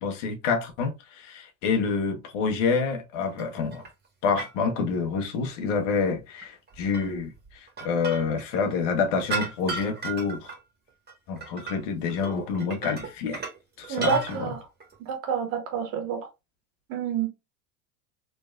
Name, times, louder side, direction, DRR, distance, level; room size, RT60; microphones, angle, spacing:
voice 1, 0.0-3.8 4.2-10.5 11.3-13.4 13.8-14.2, left 5 dB, 65° left, 1.4 m, -27 dB
sound 1, 3.3-3.9 4.4-4.5 6.7-8.7 9.2-10.6 10.9-11.8 12.1-13.6 13.8-14.4 14.8-14.9, right 4 dB, 25° right, 1.8 m, -35 dB
voice 2, 13.9-14.6 15.0-16.2 16.9-17.3, right 6 dB, 55° right, 1.9 m, -28 dB
4.2 x 3.3 x 2.5 m
hypercardioid pair, 90°, 40 cm